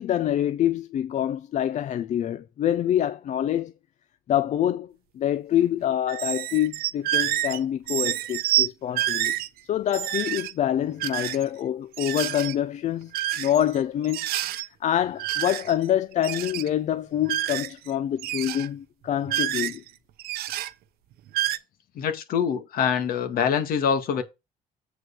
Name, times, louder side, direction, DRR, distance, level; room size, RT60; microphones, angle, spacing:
voice 1, 0.0-3.7 4.3-9.4 9.7-13.1 13.4-14.3 14.8-19.8, left 11 dB, 50° left, 0.5 m, -26 dB
sound 1, 6.1-7.6 7.9-8.7 8.9-9.5 9.9-10.5 11.0-11.4 11.9-12.5 13.1-13.8 14.0-14.7 15.2-15.9 16.1-16.7 17.2-17.9 18.2-18.7 19.3-19.9 20.2-20.7 21.3-21.6, right 13 dB, 80° right, 0.7 m, -28 dB
voice 2, 22.0-24.2, left 7 dB, 70° left, 2.1 m, -24 dB
8.0 x 4.7 x 6.0 m
cardioid pair, 130°, 15 cm